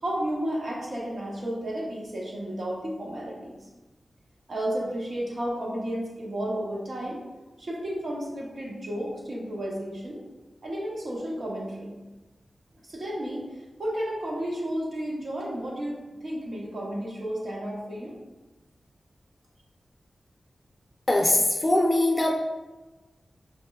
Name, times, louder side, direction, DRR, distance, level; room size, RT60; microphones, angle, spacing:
voice 1, 0.0-3.7 4.5-7.2 7.6-10.2 10.6-12.0 12.8-13.4 13.8-18.1, right 1 dB, 70° right, -4 dB, 1.0 m, -32 dB
voice 2, 21.1-22.3, left 1 dB, 35° left, 1 dB, 0.6 m, -21 dB
5.1 x 2.1 x 2.3 m, 1.2 s
cardioid pair, 55°, 0 cm